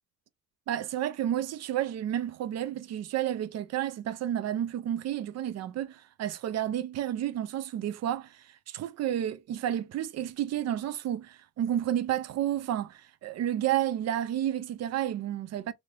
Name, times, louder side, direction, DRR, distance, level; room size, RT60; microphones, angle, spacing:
voice 1, 0.7-8.4 8.7-15.7, right 11 dB, 60° right, 0.5 m, -31 dB
3.2 x 2.7 x 2.7 m
cardioid pair, 90°, 30 cm